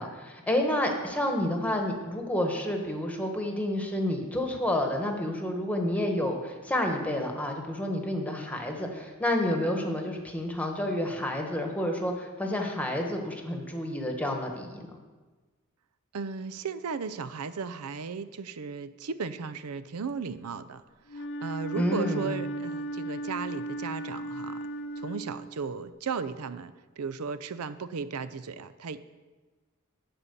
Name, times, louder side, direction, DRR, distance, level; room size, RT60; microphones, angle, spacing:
voice 1, 0.0-14.7 21.8-22.4, left 1 dB, 5° left, 2 dB, 1.2 m, -29 dB
voice 2, 16.1-20.8 21.1-24.6 25.0-29.1, right 5 dB, 90° right, 14 dB, 0.5 m, -36 dB
Wind instrument woodwind instrument, 21.1-25.8, right 1 dB, 50° left, 0.6 m, -36 dB
12.0 x 4.3 x 8.2 m, 1.3 s
head